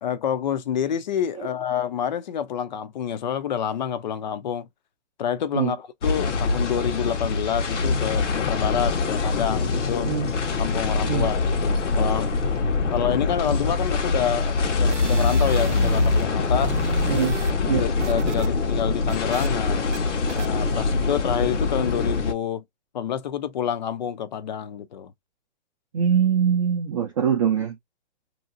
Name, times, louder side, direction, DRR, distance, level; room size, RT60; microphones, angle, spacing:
voice 1, 0.0-4.7 5.2-10.1 10.6-12.3 12.9-16.8 17.6-19.8 20.3-22.6 22.9-25.1, left 8 dB, 40° left, 0.5 m, -28 dB
sound 1, 6.0-22.3, left 4 dB, 85° left, 1.1 m, -24 dB
voice 2, 10.0-10.3 11.1-11.3 12.8-12.9 17.1-17.4 17.7-17.8 20.7-20.8 25.9-27.8, right 8 dB, 30° right, 0.5 m, -23 dB
sound 2, 14.6-16.3 16.5-18.5 18.8-19.5 19.9-20.0 20.3-20.5, right 10 dB, 80° right, 0.5 m, -35 dB
2.8 x 2.8 x 2.5 m
hypercardioid pair, 160°, 35 cm